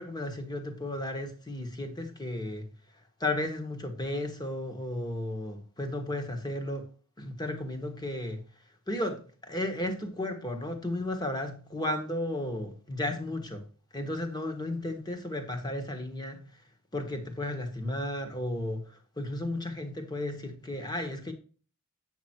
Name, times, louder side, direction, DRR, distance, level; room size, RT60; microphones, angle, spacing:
voice 1, 0.0-2.7 3.2-6.9 7.2-8.4 8.9-13.7 13.9-16.6 16.9-21.3, left 1 dB, 20° left, 1.5 m, -34 dB
8.6 x 6.1 x 4.5 m
head